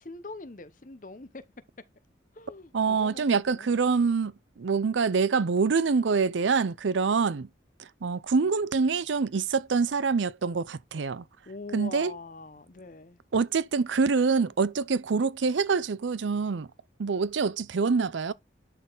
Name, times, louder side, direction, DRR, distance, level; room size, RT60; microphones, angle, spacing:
voice 1, 0.0-1.4 2.4-3.7 11.5-13.2, left 3 dB, 45° left, 0.9 m, -43 dB
voice 2, 2.7-7.5 8.0-11.2 11.7-12.1 13.3-16.7 17.0-18.3, right 5 dB, 85° right, 0.5 m, -25 dB
11.0 x 4.1 x 4.0 m
head